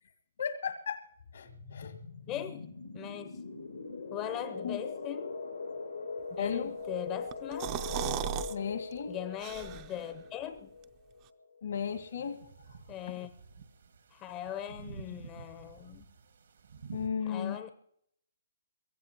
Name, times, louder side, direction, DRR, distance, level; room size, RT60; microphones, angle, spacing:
voice 1, 0.4-1.0 1.3-1.9 4.6-4.8 6.4-6.7 8.5-9.2 11.6-12.4 16.9-17.6, left 7 dB, 70° left, 1.8 m, -35 dB
sound 1, 1.2-11.7, left 4 dB, 90° left, 2.4 m, -41 dB
voice 2, 2.3-2.7 2.9-3.6 4.1-5.3 6.3-7.8 9.1-10.7 12.9-13.3 14.1-16.0 17.3-17.7, left 11 dB, 25° left, 0.7 m, -40 dB
sound 2, 7.3-8.5 8.9-9.0 9.4-10.1, right 13 dB, 30° right, 0.5 m, -35 dB
sound 3, 11.9-17.1, right 6 dB, 75° right, 1.6 m, -50 dB
23.0 x 15.5 x 2.9 m
hypercardioid pair, 140°, 0 cm